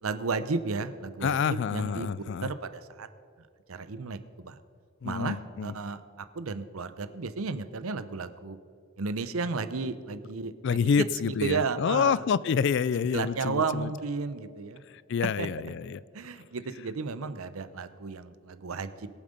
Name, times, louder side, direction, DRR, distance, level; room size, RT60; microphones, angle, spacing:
voice 1, 0.0-2.1 2.4-3.1 3.4-4.6 5.0-8.6 9.0-12.5 13.0-14.8 15.4-15.5 16.1-19.1, right 4 dB, 80° right, 0.7 m, -33 dB
voice 2, 1.2-2.5 5.0-5.7 10.6-13.9 15.1-16.0, left 6 dB, 55° left, 0.3 m, -27 dB
21.5 x 7.3 x 5.2 m
head